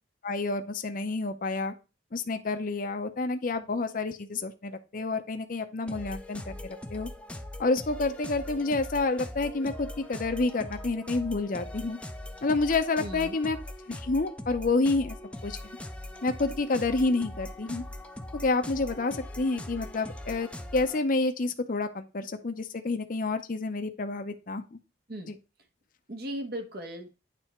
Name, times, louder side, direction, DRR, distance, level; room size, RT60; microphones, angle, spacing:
voice 1, 0.2-1.7 2.1-7.1 7.6-12.0 12.4-13.6 13.9-15.2 15.4-15.6 16.2-17.8 18.4-24.8, left 3 dB, 50° left, 8 dB, 0.6 m, -29 dB
sound 1, 5.9-21.0, left 1 dB, 5° left, 0.5 m, -41 dB
voice 2, 13.0-13.4 25.1-25.3 26.1-27.1, right 1 dB, 60° right, 5 dB, 1.2 m, -37 dB
9.0 x 3.4 x 4.3 m, 0.30 s
head